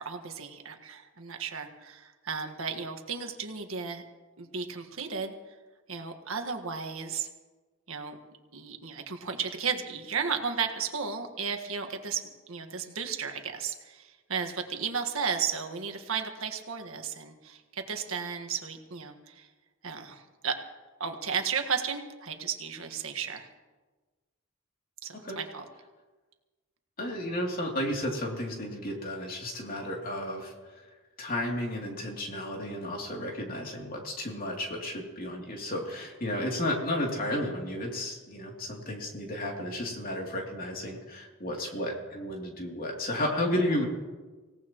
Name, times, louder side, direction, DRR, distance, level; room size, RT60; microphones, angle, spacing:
voice 1, 0.0-4.0 4.4-5.3 5.9-7.3 7.9-8.2 8.5-12.2 12.5-19.5 19.8-20.5 21.0-23.5 25.0-25.6, right 6 dB, 85° right, 5 dB, 1.7 m, -34 dB
voice 2, 27.0-30.8 31.2-43.8, left 1 dB, 45° left, -1 dB, 3.0 m, -33 dB
25.0 x 17.5 x 3.1 m, 1.3 s
head